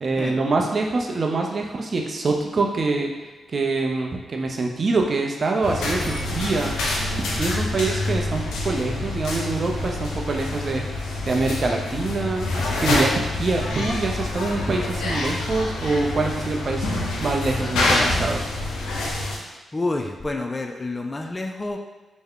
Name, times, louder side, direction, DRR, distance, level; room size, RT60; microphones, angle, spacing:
voice 1, 0.0-3.1 3.5-6.7 7.3-10.8 11.3-16.9 17.2-18.4, right 3 dB, 50° right, 2 dB, 0.5 m, -25 dB
sound 1, 5.6-19.4, left 2 dB, 85° left, 0.5 m, -26 dB
voice 2, 7.2-7.7 19.3-21.8, left 2 dB, 30° left, 3 dB, 0.3 m, -30 dB
3.4 x 2.1 x 3.6 m, 1.2 s
supercardioid pair, 45°, 0 cm